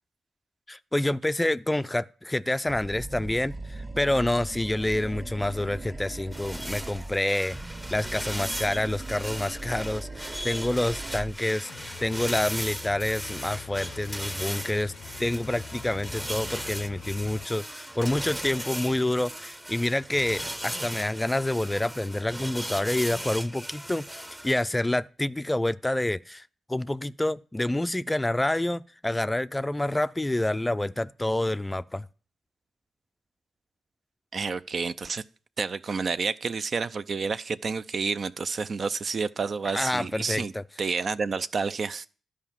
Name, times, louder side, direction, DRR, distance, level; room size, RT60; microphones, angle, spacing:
voice 1, 0.7-7.6 7.9-14.9 15.2-26.4 26.7-32.1 39.7-40.6, left 1 dB, 15° left, 0.4 m, -28 dB
Animal, 2.7-7.2 7.5-11.4, right 2 dB, 35° right, 1.7 m, -39 dB
sound 1, 6.3-24.5, equal, 10° right, 0.8 m, -37 dB
sound 2, 11.6-17.5, left 8 dB, 80° left, 0.5 m, -44 dB
voice 2, 34.3-35.2 35.6-40.5 40.8-42.1, right 5 dB, 50° right, 0.5 m, -29 dB
11.0 x 4.9 x 7.3 m
supercardioid pair, 60°, 0 cm